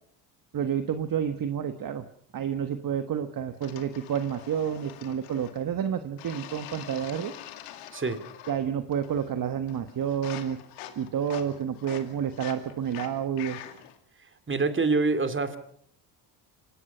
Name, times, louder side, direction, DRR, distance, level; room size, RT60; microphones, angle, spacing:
voice 1, 0.5-2.0 2.3-7.3 8.5-10.6 11.0-13.6, right 8 dB, 40° right, 9 dB, 1.3 m, -29 dB
sound 1, 3.6-5.7 6.2-8.6 8.9-9.4 9.7-14.0, left 12 dB, 85° left, 2.4 m, -45 dB
voice 2, 14.5-15.6, right 3 dB, 25° right, 10 dB, 2.5 m, -25 dB
25.5 x 18.5 x 5.6 m, 0.62 s
supercardioid pair, 80°, 50 cm